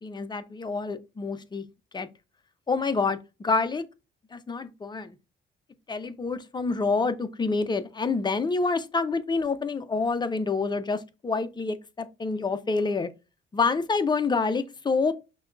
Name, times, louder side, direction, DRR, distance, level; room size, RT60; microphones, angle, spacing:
voice 1, 0.0-1.6 1.9-2.1 2.7-3.8 4.3-5.2 5.9-13.1 13.5-15.1, left 4 dB, 20° left, 0.5 m, -27 dB
5.7 x 2.3 x 2.3 m
cardioid pair, 90°, 20 cm